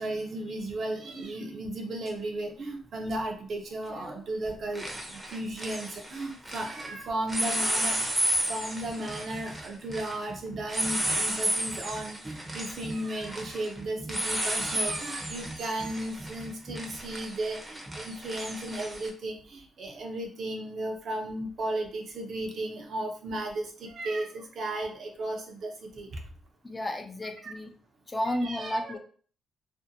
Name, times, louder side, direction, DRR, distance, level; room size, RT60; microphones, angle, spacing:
voice 1, 0.0-8.0 8.5-26.2 27.4-27.5 28.3-29.0, right 1 dB, 55° right, 3 dB, 0.6 m, -35 dB
sound 1, 2.1-2.2 3.9-4.2 4.5-6.9 7.3-19.1, right 1 dB, 15° right, 0.6 m, -33 dB
voice 2, 26.6-27.7 28.1-29.0, left 1 dB, 25° left, 5 dB, 0.4 m, -32 dB
2.5 x 2.1 x 2.7 m, 0.44 s
cardioid pair, 90°, 0 cm